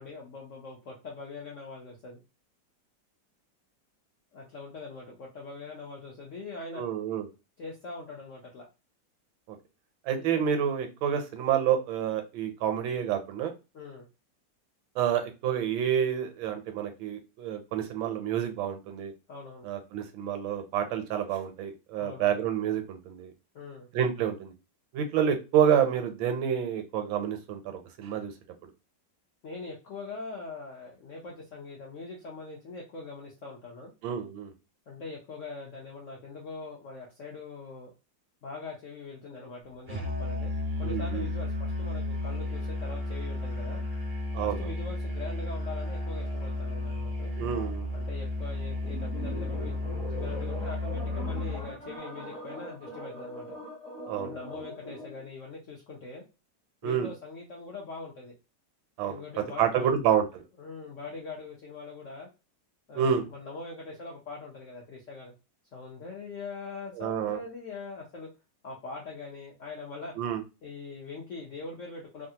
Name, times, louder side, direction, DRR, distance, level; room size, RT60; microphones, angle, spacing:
voice 1, 0.0-2.2 4.3-6.8 7.6-8.7 13.7-14.1 19.3-19.7 22.0-22.3 23.5-23.9 29.4-33.9 34.9-37.9 38.4-40.5 40.8-43.8 44.4-47.3 47.9-53.6 54.2-56.2 56.8-58.3 59.1-59.9 60.6-62.3 62.9-65.3 65.7-68.3 68.6-70.1 70.6-72.3, left 3 dB, 70° left, -2 dB, 0.7 m, -42 dB
voice 2, 6.7-7.3 9.5-9.6 10.1-13.5 15.0-19.1 19.6-23.3 23.9-24.5 24.9-28.3 34.0-34.5 40.8-41.3 44.3-44.7 47.4-47.9 54.1-54.3 56.8-57.1 59.0-60.4 63.0-63.2 67.0-67.4 70.2-70.4, right 9 dB, 80° right, 6 dB, 1.4 m, -28 dB
Musical instrument, 39.9-51.7, left 2 dB, 45° right, 0.6 m, -33 dB
sound 1, 48.8-55.3, equal, 5° left, 0.5 m, -41 dB
3.2 x 2.3 x 2.7 m, 0.28 s
omnidirectional pair, 2.1 m